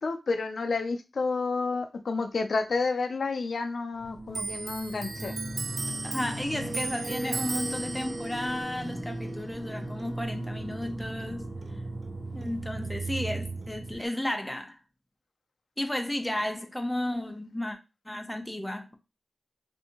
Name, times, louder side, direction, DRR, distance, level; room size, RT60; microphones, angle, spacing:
voice 1, 0.0-5.3, left 4 dB, 75° left, 0.4 m, -30 dB
sound 1, 4.0-13.9, right 1 dB, 15° right, 1.1 m, -37 dB
Clock, 4.3-11.3 11.6-12.9 13.2-14.1, right 4 dB, 85° right, 0.3 m, -38 dB
voice 2, 6.0-11.5 12.3-14.8 15.8-17.8 18.1-19.0, left 1 dB, 5° left, 0.5 m, -33 dB
3.3 x 2.6 x 2.8 m
wide cardioid pair, 115°, 0 cm